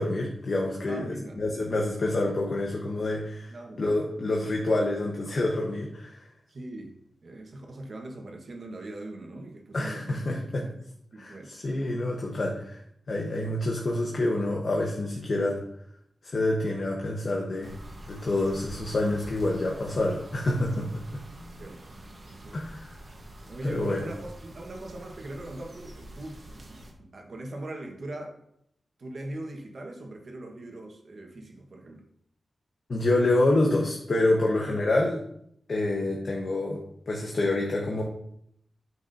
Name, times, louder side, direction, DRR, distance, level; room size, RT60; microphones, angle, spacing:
voice 1, 0.0-6.2 9.7-10.7 11.2-12.8 13.1-15.6 16.2-17.8 18.1-21.0 22.5-22.9 23.6-24.0 32.9-35.2 35.7-38.0, left 2 dB, 55° left, -1 dB, 1.0 m, -27 dB
voice 2, 0.9-1.4 3.5-3.8 6.5-7.0 7.2-10.8 11.1-11.6 21.6-22.0 22.3-22.6 23.5-28.4 29.0-32.0 34.6-35.0 36.0-36.1, right 1 dB, 60° right, 2 dB, 1.3 m, -41 dB
sound 1, 17.6-26.9, right 1 dB, 40° right, 1.2 m, -46 dB
9.2 x 6.0 x 2.7 m, 0.71 s
wide cardioid pair, 115°, 0 cm